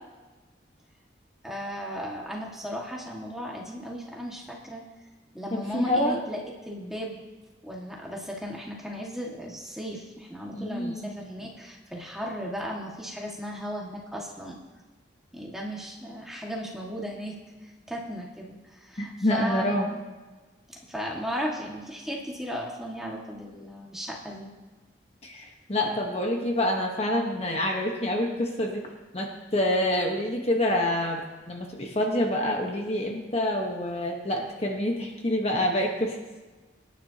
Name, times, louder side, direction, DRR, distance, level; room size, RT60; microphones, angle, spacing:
voice 1, 1.4-4.8 5.3-6.4 6.7-7.2 7.6-14.6 15.3-17.4 17.9-19.8 20.7-24.5, equal, ahead, -2 dB, 1.8 m, -36 dB
voice 2, 5.5-6.2 10.5-11.1 19.0-19.9 25.2-28.8 29.1-36.2, left 1 dB, 35° left, 1 dB, 1.2 m, -27 dB
25.0 x 10.0 x 2.9 m, 1.3 s
head